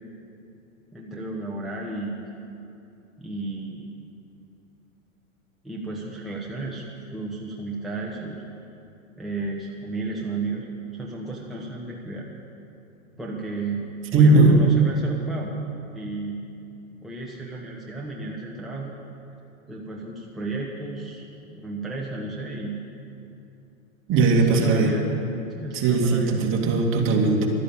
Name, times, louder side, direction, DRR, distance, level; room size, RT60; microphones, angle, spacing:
voice 1, 0.9-2.2 3.2-3.9 5.6-6.8 7.1-8.4 9.2-10.6 10.9-12.3 13.2-13.8 14.1-15.5 15.9-16.4 17.0-18.9 19.7-22.8 24.2-25.1 25.5-26.4, right 3 dB, ahead, -4 dB, 1.2 m, -33 dB
voice 2, 14.1-14.6 24.1-24.9 25.7-27.5, right 3 dB, 30° right, 1 dB, 2.1 m, -18 dB
12.5 x 10.5 x 8.7 m, 2.7 s
hypercardioid pair, 125°, 42 cm